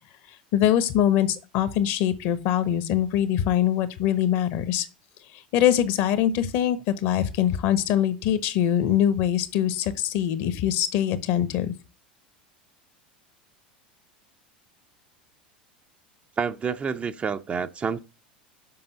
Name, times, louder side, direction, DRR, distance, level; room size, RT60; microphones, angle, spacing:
voice 1, 0.5-4.9 5.5-11.7, left 10 dB, 55° left, 1.1 m, -23 dB
voice 2, 16.4-18.0, right 6 dB, 25° right, 0.6 m, -28 dB
6.9 x 5.5 x 6.7 m
hypercardioid pair, 85°, 5 cm